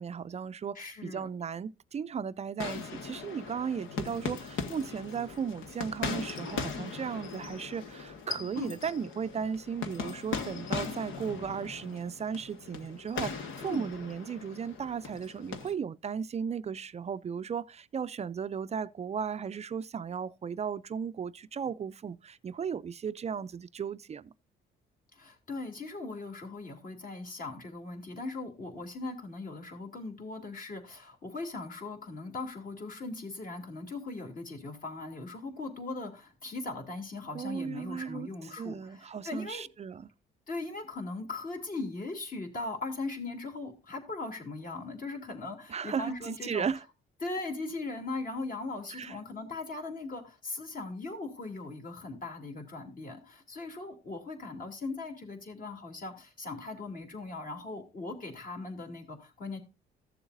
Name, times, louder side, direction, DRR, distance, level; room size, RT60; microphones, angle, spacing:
voice 1, 0.0-24.3 37.3-40.1 45.7-46.8 48.9-49.2, right 7 dB, 35° right, 0.4 m, -36 dB
voice 2, 0.7-1.3 8.6-8.7 13.6-13.9 25.1-39.7 40.5-46.7 47.2-59.6, left 3 dB, 45° left, 2.8 m, -39 dB
sound 1, 2.6-15.7, left 5 dB, 80° left, 1.3 m, -39 dB
14.5 x 7.0 x 2.6 m
cardioid pair, 90°, 20 cm